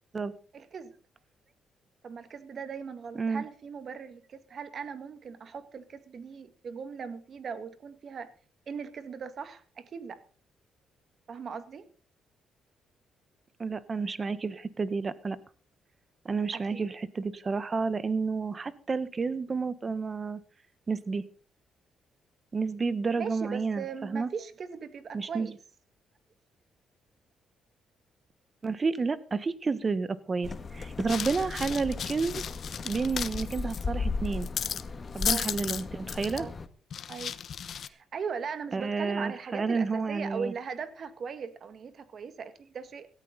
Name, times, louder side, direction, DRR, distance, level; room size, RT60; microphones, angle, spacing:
voice 1, 0.5-0.9 2.0-8.3 8.7-10.2 11.3-11.9 16.5-16.8 23.2-25.6 35.2-35.5 36.4-36.5 37.1-37.3 37.8-43.1, right 6 dB, 50° right, 11 dB, 2.0 m, -39 dB
voice 2, 13.6-15.4 16.2-20.4 20.9-21.2 22.5-24.3 25.1-25.5 28.6-32.4 32.8-34.5 35.1-36.5 38.7-40.5, right 4 dB, 35° right, 15 dB, 1.3 m, -30 dB
sound 1, 30.4-36.7, left 4 dB, 35° left, 1.6 m, -36 dB
sound 2, 31.1-33.8 34.2-34.8 35.2-35.8 36.1-36.4 36.9-37.9, left 8 dB, 60° left, 1.0 m, -35 dB
18.0 x 14.0 x 4.1 m, 0.39 s
cardioid pair, 90°, 0 cm